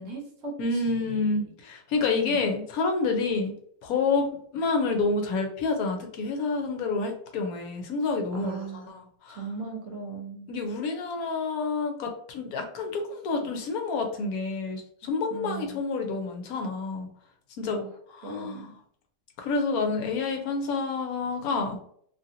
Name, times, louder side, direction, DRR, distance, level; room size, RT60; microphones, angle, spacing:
voice 1, 0.0-1.4 2.3-2.6 8.3-9.0 9.3-10.5 15.3-15.8 17.7-17.9 18.2-18.7, right 4 dB, 60° right, 1 dB, 1.0 m, -38 dB
voice 2, 0.6-3.5 3.8-4.3 4.5-8.6 8.9-9.4 10.5-17.1 17.6-17.8 18.1-18.7 19.4-21.8, left 4 dB, 70° left, 4 dB, 1.0 m, -28 dB
2.8 x 2.7 x 2.5 m, 0.64 s
omnidirectional pair, 1.7 m